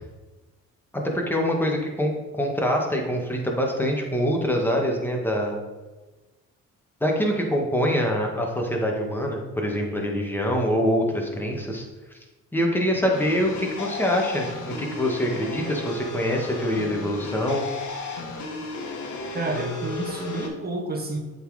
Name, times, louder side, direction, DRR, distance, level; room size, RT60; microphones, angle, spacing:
voice 1, 0.9-5.6 7.0-11.8 12.5-17.6, equal, 5° left, 0 dB, 1.7 m, -25 dB
sound 1, 13.1-20.5, left 3 dB, 70° left, 1.4 m, -34 dB
voice 2, 19.3-21.2, right 2 dB, 30° right, 2 dB, 1.5 m, -29 dB
7.8 x 4.3 x 4.9 m, 1.2 s
cardioid pair, 90°, 30 cm